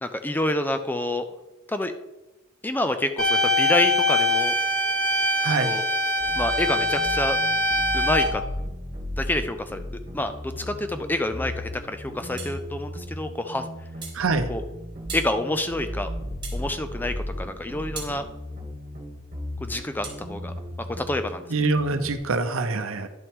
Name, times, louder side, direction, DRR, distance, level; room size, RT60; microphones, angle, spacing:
voice 1, 0.0-1.3 1.7-1.9 2.6-4.6 5.6-5.9 6.4-7.4 7.9-8.4 9.2-9.8 10.1-13.7 14.5-14.6 15.1-16.1 16.5-18.3 19.6-20.5 21.0-21.4, left 1 dB, 10° left, 9 dB, 0.4 m, -28 dB
sound 1, 3.2-8.2, left 1 dB, 80° left, 3.1 m, -23 dB
sound 2, 6.2-22.2, equal, 40° right, 1.8 m, -36 dB
sound 3, 12.4-12.6 14.0-14.2 15.1-15.3 16.4-16.6 17.9-18.2 20.0-20.2, right 5 dB, 20° right, 1.8 m, -37 dB
voice 2, 14.1-14.5 21.5-23.1, right 3 dB, 75° right, 8 dB, 0.7 m, -24 dB
10.5 x 5.7 x 3.6 m, 1.0 s
head